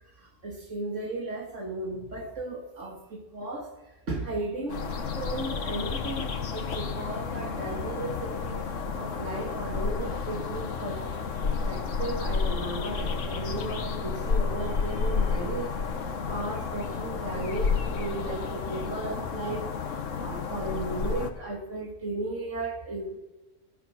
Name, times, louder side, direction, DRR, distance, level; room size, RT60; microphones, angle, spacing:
voice 1, 0.2-3.7 4.1-4.9 5.1-8.6 9.0-11.1 11.6-15.7 16.3-19.7 20.2-23.2, right 2 dB, 80° right, 1 dB, 2.8 m, -35 dB
sound 1, 4.7-21.3, left 5 dB, 85° left, 1.5 m, -31 dB
18.0 x 11.0 x 6.0 m, 1.1 s
omnidirectional pair, 1.2 m